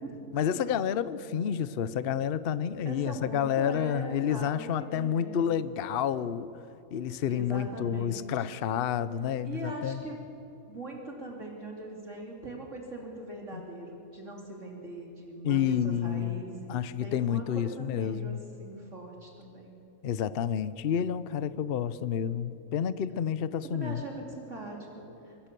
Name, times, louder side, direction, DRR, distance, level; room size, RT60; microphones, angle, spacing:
voice 1, 0.3-6.5 6.9-10.0 13.5-13.6 15.4-16.4 16.7-18.4 20.0-24.0, left 8 dB, 50° left, 15 dB, 0.8 m, -29 dB
voice 2, 2.9-5.7 7.3-8.5 9.4-10.2 10.7-19.7 23.7-25.5, right 2 dB, 55° right, 0 dB, 3.3 m, -41 dB
25.0 x 21.0 x 6.9 m, 2.9 s
omnidirectional pair, 1.5 m